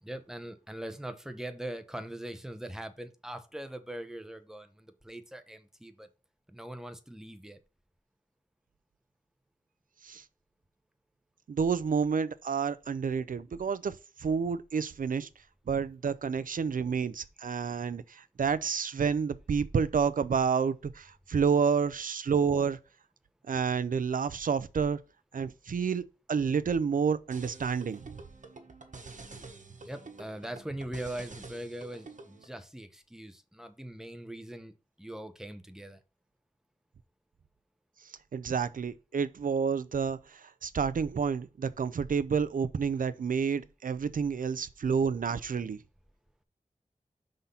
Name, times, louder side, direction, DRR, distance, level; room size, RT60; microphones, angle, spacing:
voice 1, 0.0-6.1 6.5-7.6 29.8-36.0, right 1 dB, 5° right, 0.8 m, -41 dB
voice 2, 11.5-15.3 15.7-22.8 23.5-25.0 25.3-26.0 26.3-28.1 38.3-45.8, right 6 dB, 90° right, 0.5 m, -29 dB
sound 1, 27.3-32.5, right 3 dB, 65° right, 1.2 m, -48 dB
5.8 x 3.8 x 5.4 m
wide cardioid pair, 80°, 14 cm